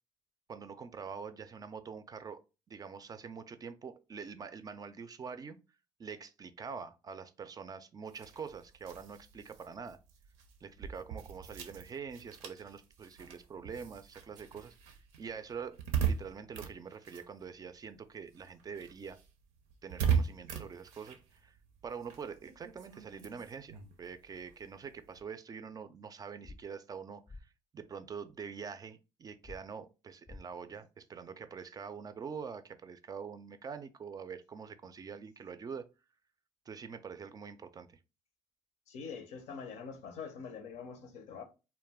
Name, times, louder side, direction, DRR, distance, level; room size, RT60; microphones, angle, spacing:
voice 1, 0.5-2.4 2.7-5.6 6.0-10.0 10.6-19.2 19.8-21.6 21.8-35.9 36.7-38.0, right 6 dB, 35° right, 0.3 m, -45 dB
sound 1, 8.1-18.0 18.3-25.2, right 7 dB, 90° right, 0.5 m, -39 dB
sound 2, 26.4-26.6 27.3-27.4 29.4-29.6 30.3-30.4, left 2 dB, 25° left, 0.5 m, -47 dB
voice 2, 38.9-41.4, left 6 dB, 75° left, 0.6 m, -44 dB
2.3 x 2.1 x 3.3 m
supercardioid pair, 75°, 12 cm